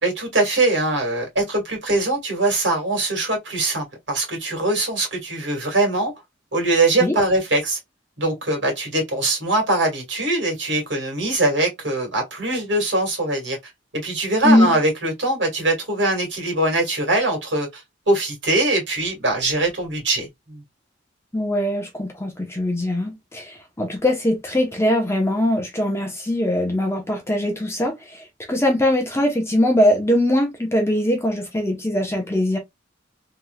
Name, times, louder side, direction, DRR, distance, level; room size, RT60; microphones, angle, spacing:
voice 1, 0.0-6.1 6.5-7.8 8.2-13.6 13.9-20.6, right 2 dB, 70° right, 2.1 m, -22 dB
voice 2, 21.3-32.6, left 1 dB, 15° left, 0.9 m, -21 dB
3.5 x 3.0 x 2.3 m
head